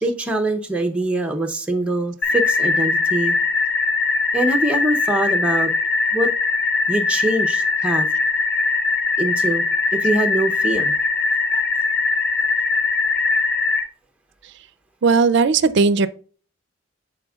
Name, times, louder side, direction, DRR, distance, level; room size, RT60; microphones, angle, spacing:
voice 1, 0.0-3.3 4.3-5.7 6.1-6.3 6.9-8.1 9.2-9.6 9.9-10.9 11.5-11.6, right 1 dB, 5° right, 0.7 m, -23 dB
sound 1, 2.2-13.8, left 4 dB, 55° left, 1.2 m, -21 dB
voice 2, 15.0-16.1, right 4 dB, 55° right, 0.4 m, -16 dB
10.5 x 4.3 x 2.3 m
head